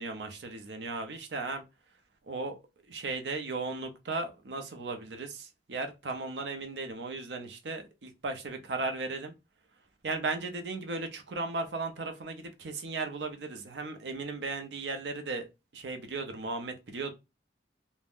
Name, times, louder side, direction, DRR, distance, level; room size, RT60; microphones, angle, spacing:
voice 1, 0.0-1.6 2.3-2.6 2.9-9.3 10.0-15.5 15.7-17.1, right 3 dB, 75° right, 0.6 m, -36 dB
2.5 x 2.1 x 3.4 m
head